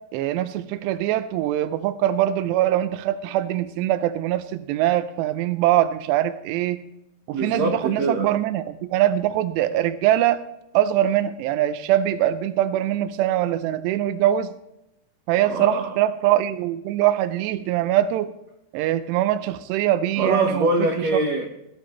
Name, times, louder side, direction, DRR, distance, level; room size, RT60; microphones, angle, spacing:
voice 1, 0.1-6.8 7.3-10.4 10.7-14.5 15.3-18.3 18.7-20.7, right 12 dB, 85° right, 10 dB, 2.8 m, -22 dB
voice 2, 7.3-8.3 15.4-16.0 20.2-21.5, right 2 dB, 65° right, 1 dB, 1.7 m, -23 dB
19.0 x 11.5 x 3.2 m, 0.84 s
omnidirectional pair, 4.9 m